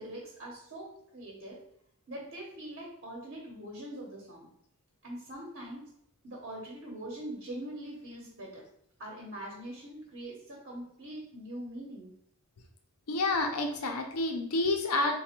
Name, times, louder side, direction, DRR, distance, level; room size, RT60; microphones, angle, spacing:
voice 1, 0.0-1.6 2.1-4.5 5.0-5.9 6.2-8.6 9.0-12.1, right 1 dB, 55° right, -3 dB, 0.9 m, -43 dB
voice 2, 13.1-15.2, left 2 dB, 90° left, 3 dB, 0.7 m, -29 dB
3.4 x 2.3 x 4.3 m, 0.72 s
head